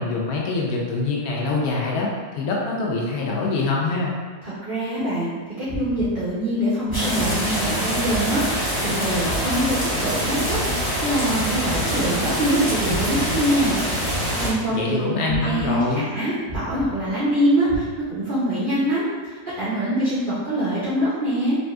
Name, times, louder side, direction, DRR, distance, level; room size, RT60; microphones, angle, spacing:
voice 1, 0.0-4.1 14.7-16.1, left 3 dB, 70° left, -3 dB, 1.0 m, -24 dB
voice 2, 4.4-5.3 5.6-13.7 14.1-15.0 15.2-19.0 19.5-21.6, right 1 dB, 75° right, -9 dB, 0.4 m, -24 dB
sound 1, 5.6-6.6 6.8-7.8 8.0-10.2 10.4-12.6 12.8-13.8 14.0-15.0 15.2-16.2 16.4-17.4 17.6-17.9, right 1 dB, 50° left, 0.5 m, -35 dB
sound 2, 6.9-14.5, equal, 10° left, 0.6 m, -25 dB
3.3 x 2.6 x 2.2 m, 1.5 s
omnidirectional pair, 1.8 m